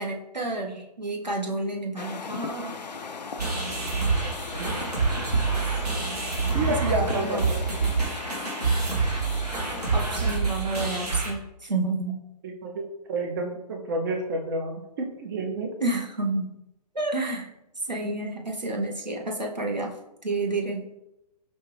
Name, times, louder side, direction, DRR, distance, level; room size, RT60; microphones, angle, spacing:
voice 1, 0.0-2.8 6.9-7.4 8.9-9.0 9.9-12.1 15.8-16.5 16.9-17.5 17.9-19.9 20.2-20.9, right 2 dB, 85° right, 0 dB, 1.0 m, -30 dB
sound 1, 2.0-10.4, left 5 dB, 80° left, 0.4 m, -38 dB
sound 2, 3.4-11.3, right 4 dB, 65° right, 1.6 m, -27 dB
voice 2, 6.5-7.6 12.4-15.7, right 2 dB, 30° right, 2 dB, 0.6 m, -30 dB
5.3 x 2.5 x 3.3 m, 0.88 s
figure-of-eight pair, 125°, 21 cm